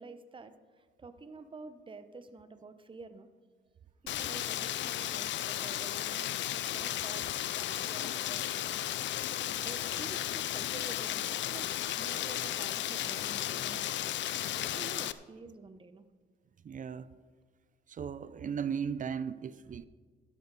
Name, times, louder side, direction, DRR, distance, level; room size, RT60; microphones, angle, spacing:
voice 1, 0.0-3.3 4.1-8.4 9.4-11.7 12.0-14.2 14.5-16.0, right 3 dB, 25° right, 0.9 m, -49 dB
Rain, 4.1-15.1, left 12 dB, 65° left, 0.5 m, -34 dB
voice 2, 16.6-17.1 17.9-19.8, right 7 dB, 40° right, 0.5 m, -36 dB
12.0 x 12.0 x 4.1 m
cardioid pair, 90°, 20 cm